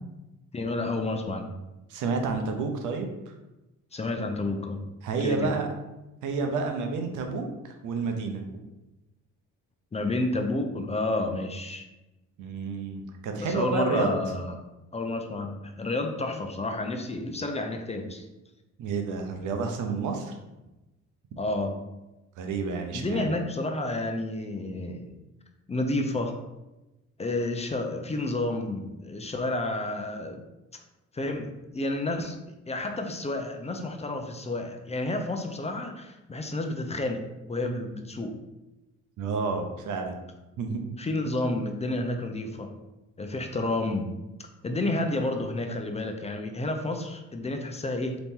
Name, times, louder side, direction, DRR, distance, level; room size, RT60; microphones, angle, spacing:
voice 1, 0.5-1.5 3.9-4.9 5.2-5.5 9.9-11.8 13.4-14.5 14.9-18.2 21.4-21.8 22.9-25.1 25.7-26.3 27.2-30.4 31.1-31.5 31.7-32.4 32.7-37.2 37.5-38.3 41.0-42.7 43.2-44.1 44.6-48.2, left 2 dB, 20° left, 4 dB, 0.5 m, -30 dB
voice 2, 1.9-3.3 5.0-5.7 6.2-8.6 12.4-14.1 18.8-20.3 22.4-23.2 39.2-40.2 40.6-40.8, right 4 dB, 80° right, 4 dB, 0.7 m, -30 dB
3.9 x 3.0 x 3.7 m, 1.0 s
cardioid pair, 90°, 30 cm